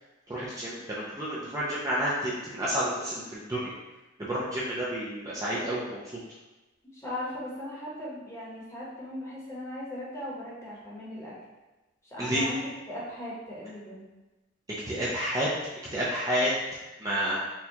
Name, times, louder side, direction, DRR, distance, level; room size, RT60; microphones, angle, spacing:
voice 1, 0.3-3.7 4.2-6.2 12.2-12.4 14.7-15.5 15.9-16.5 17.0-17.4, equal, 15° right, -7 dB, 0.4 m, -30 dB
voice 2, 6.9-11.3 12.0-14.1, left 1 dB, 15° left, -7 dB, 0.9 m, -38 dB
4.4 x 2.2 x 2.8 m, 1.1 s
head